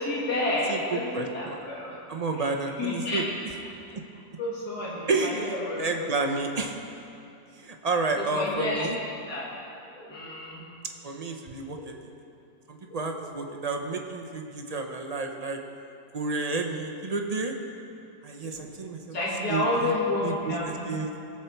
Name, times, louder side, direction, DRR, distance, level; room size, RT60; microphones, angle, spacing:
voice 1, 0.0-2.0 2.4-2.5 2.8-3.2 4.4-5.9 8.2-8.8 9.3-9.5 9.8-10.6 11.7-11.9 12.9-13.3 15.1-15.4 18.4-18.7 19.0-20.9, left 2 dB, 70° left, -6 dB, 3.0 m, -30 dB
voice 2, 0.7-1.6 2.1-3.2 5.1-6.8 7.6-9.0 11.0-11.8 12.7-15.6 16.1-17.5 18.2-19.0 19.5-19.9 20.2-21.1, right 3 dB, 35° right, 3 dB, 0.6 m, -30 dB
19.5 x 7.6 x 4.5 m, 2.8 s
omnidirectional pair, 1.8 m